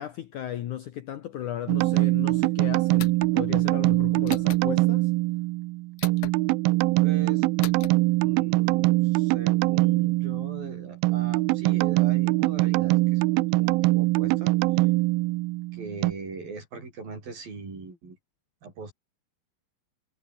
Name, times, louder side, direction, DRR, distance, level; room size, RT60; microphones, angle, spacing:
voice 1, 0.0-5.1, left 11 dB, 65° left, 2.1 m, -35 dB
sound 1, 1.7-16.1, right 21 dB, 85° right, 2.1 m, -23 dB
sound 2, 3.0-3.3 4.3-4.6 6.0-6.3 7.6-7.9, left 12 dB, 85° left, 1.5 m, -38 dB
voice 2, 7.0-7.5 8.2-14.9 15.7-18.2 18.6-18.9, right 4 dB, 60° right, 9.5 m, -40 dB
omnidirectional pair, 4.8 m